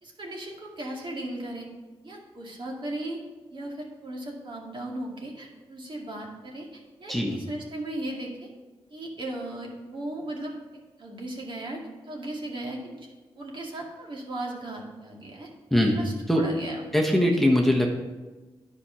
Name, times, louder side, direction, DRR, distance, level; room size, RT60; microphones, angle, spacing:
voice 1, 0.0-1.7 2.0-3.2 3.5-8.5 8.9-10.6 11.0-13.0 13.4-15.5 15.9-16.9, right 1 dB, 50° right, -1 dB, 2.1 m, -37 dB
voice 2, 7.1-7.4 15.7-16.4 16.9-17.9, left 1 dB, ahead, -1 dB, 1.2 m, -22 dB
10.0 x 5.0 x 5.6 m, 1.3 s
cardioid pair, 55°, 10 cm